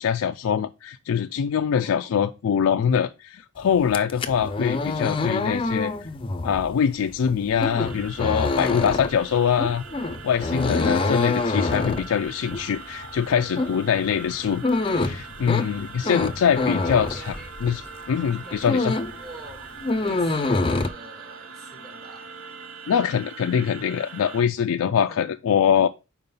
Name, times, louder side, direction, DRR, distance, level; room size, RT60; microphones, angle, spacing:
voice 1, 0.0-6.1 6.4-9.8 10.2-17.4 17.6-17.8 18.1-18.9 22.9-25.9, left 7 dB, 75° left, 0.3 m, -23 dB
voice 2, 1.8-2.1 16.5-17.6 18.3-19.7 20.0-22.3 25.0-25.3, right 2 dB, 45° right, 3.4 m, -46 dB
sound 1, 3.8-17.9 18.2-19.2 19.5-20.9, left 3 dB, 25° left, 0.5 m, -26 dB
sound 2, 7.6-24.4, right 5 dB, 65° right, 0.7 m, -42 dB
5.3 x 4.8 x 5.4 m
head